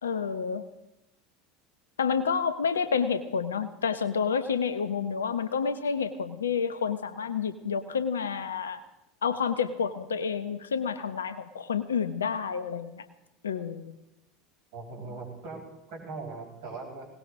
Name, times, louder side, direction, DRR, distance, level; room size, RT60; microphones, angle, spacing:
voice 1, 0.0-0.6 2.0-8.8 9.2-13.0 13.4-13.9, left 6 dB, 75° left, 11 dB, 0.9 m, -29 dB
voice 2, 14.7-15.6 15.9-17.1, right 3 dB, 60° right, -1 dB, 5.1 m, -40 dB
20.0 x 18.5 x 3.7 m, 0.90 s
figure-of-eight pair, 75°, 0 cm